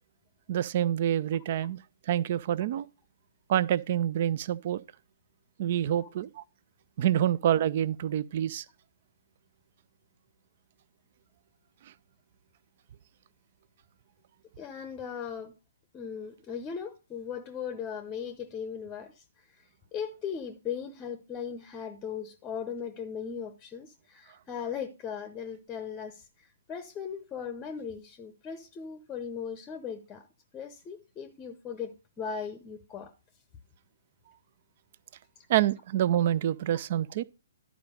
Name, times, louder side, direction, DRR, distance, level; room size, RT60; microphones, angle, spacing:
voice 1, 0.5-1.8 2.1-2.9 3.5-4.8 5.6-6.4 7.0-8.6 35.5-37.2, right 11 dB, 45° right, 0.5 m, -27 dB
voice 2, 14.6-15.5 15.9-19.6 19.9-30.3 30.5-33.1, left 7 dB, 20° left, 0.8 m, -38 dB
11.5 x 4.8 x 5.0 m
figure-of-eight pair, 125°, 0 cm